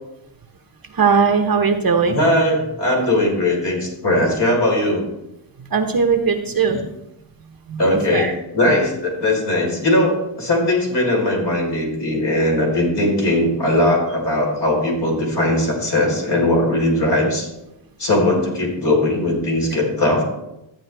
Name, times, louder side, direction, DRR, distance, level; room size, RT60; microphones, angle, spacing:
voice 1, 0.9-2.2 5.6-6.8 7.7-8.3, right 5 dB, 45° right, 4 dB, 1.0 m, -19 dB
voice 2, 2.0-5.0 7.8-8.3 8.5-17.5 18.0-20.2, left 1 dB, 60° left, -3 dB, 4.4 m, -19 dB
13.5 x 9.2 x 3.4 m, 0.90 s
wide cardioid pair, 120°, 48 cm